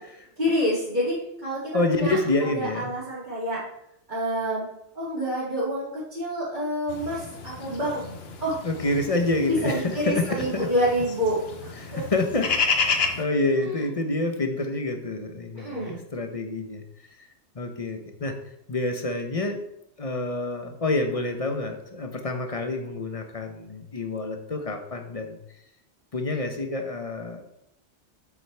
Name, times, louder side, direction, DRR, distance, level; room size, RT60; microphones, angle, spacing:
voice 1, 0.4-1.6 1.9-2.2 2.5-3.6 4.1-4.7 4.9-8.0 8.4-8.6 9.4-11.4 11.9-12.0 13.6-13.8 15.6-16.0, equal, 40° right, -11 dB, 2.7 m, -27 dB
voice 2, 1.7-2.9 8.6-10.7 11.8-12.5 12.8-16.8 17.2-17.3 17.5-18.4 18.7-19.6 20.0-25.4 26.1-27.5, left 2 dB, 35° left, 4 dB, 0.9 m, -28 dB
sound 1, 6.9-13.2, left 5 dB, 60° left, 1.1 m, -31 dB
7.8 x 7.3 x 3.4 m, 0.78 s
omnidirectional pair, 1.2 m